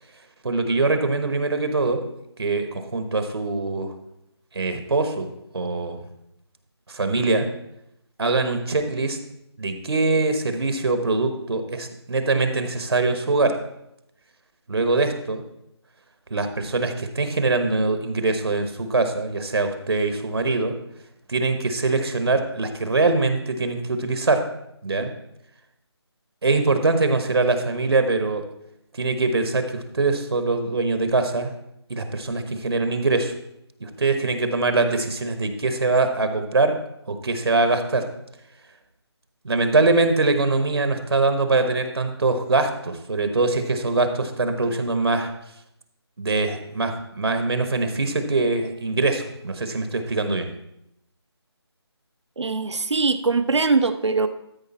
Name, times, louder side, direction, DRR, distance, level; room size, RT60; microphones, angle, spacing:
voice 1, 0.4-2.0 2.4-3.9 4.5-6.0 6.9-7.5 8.2-9.2 9.6-13.6 14.7-15.4 16.3-20.8 21.3-24.5 24.8-25.1 26.4-28.4 28.9-31.5 31.9-33.3 33.8-36.8 37.1-38.1 39.4-45.3 46.2-50.5, right 3 dB, 65° right, 7 dB, 1.1 m, -23 dB
voice 2, 52.4-54.3, right 4 dB, 85° right, 11 dB, 0.8 m, -21 dB
13.0 x 5.1 x 4.2 m, 0.81 s
figure-of-eight pair, 170°, 14 cm